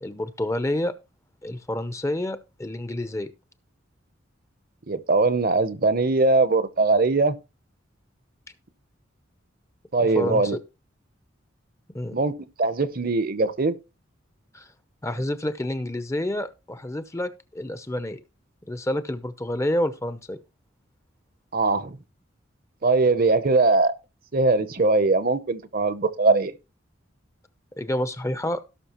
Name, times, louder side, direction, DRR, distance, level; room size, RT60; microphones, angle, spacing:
voice 1, 0.0-0.9 1.4-3.3 10.0-10.6 11.9-12.2 14.5-14.7 15.0-18.2 18.7-20.4 27.8-28.6, left 1 dB, 15° left, 0.7 m, -28 dB
voice 2, 4.9-7.3 9.9-10.6 12.1-12.3 12.6-13.7 21.5-22.0 22.8-23.9 24.3-26.5, right 3 dB, 45° right, 0.8 m, -21 dB
17.5 x 6.1 x 3.0 m
head